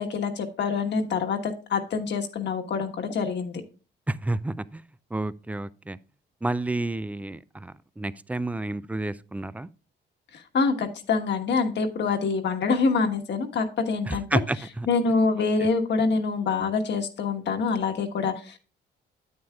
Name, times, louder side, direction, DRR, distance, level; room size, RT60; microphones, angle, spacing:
voice 1, 0.0-3.6 10.3-14.4 14.9-18.6, left 4 dB, 60° left, 1.4 m, -26 dB
voice 2, 4.1-4.8 5.1-6.0 6.4-9.7 14.1-14.9, right 2 dB, 5° right, 0.4 m, -30 dB
9.5 x 8.6 x 2.3 m
cardioid pair, 90°, 20 cm